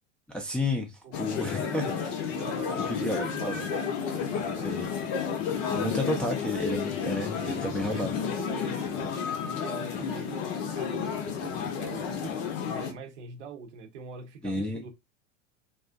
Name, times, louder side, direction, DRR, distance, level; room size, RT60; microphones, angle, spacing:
voice 1, 0.3-0.9 1.2-1.9 2.8-3.6 4.6-4.8 5.6-8.1 14.4-14.8, left 1 dB, 5° left, 0.5 m, -31 dB
voice 2, 1.0-5.3 7.3-9.2 9.4-10.4 10.7-12.4 12.6-14.9, right 5 dB, 70° right, 0.8 m, -43 dB
sound 1, 1.1-12.9, left 7 dB, 50° left, 0.7 m, -32 dB
sound 2, 2.5-12.0, left 5 dB, 90° left, 0.7 m, -43 dB
2.5 x 2.0 x 2.4 m
figure-of-eight pair, 85°, 37 cm